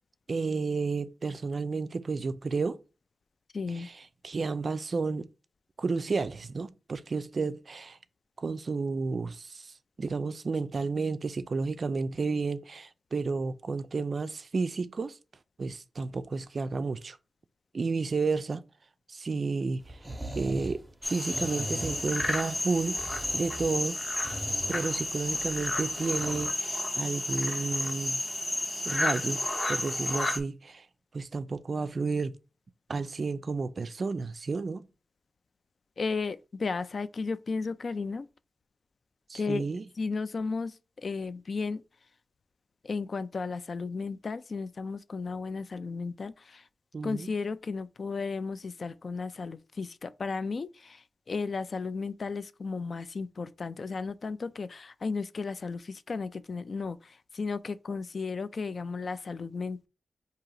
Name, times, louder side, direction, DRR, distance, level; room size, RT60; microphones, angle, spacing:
voice 1, 0.3-2.8 3.7-5.3 5.8-8.0 8.4-15.2 15.6-17.2 17.7-18.6 19.1-20.0 20.3-23.0 23.3-24.0 24.7-28.2 28.8-30.9 31.1-32.4 32.9-34.9 39.3-39.8 46.9-47.3, right 4 dB, 45° right, 0.3 m, -32 dB
voice 2, 3.5-3.9 36.0-38.3 39.3-39.7 40.0-41.8 42.8-46.6 47.0-59.9, left 4 dB, 50° left, 0.3 m, -34 dB
sound 1, 19.8-26.5, right 1 dB, 10° right, 0.7 m, -41 dB
sound 2, 21.0-30.4, left 2 dB, 25° left, 0.8 m, -31 dB
3.8 x 2.8 x 4.7 m
wide cardioid pair, 140°, 0 cm